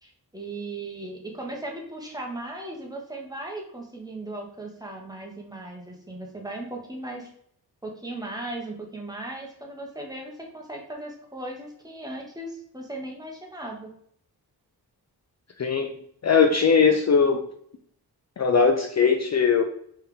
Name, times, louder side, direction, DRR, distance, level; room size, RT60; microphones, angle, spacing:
voice 1, 0.0-7.3 7.8-13.9, right 2 dB, 10° right, -1 dB, 1.3 m, -37 dB
voice 2, 15.6-15.9 16.2-17.4 18.4-19.6, left 5 dB, 45° left, 4 dB, 0.5 m, -20 dB
4.5 x 3.5 x 3.4 m, 0.67 s
cardioid pair, 60°, 39 cm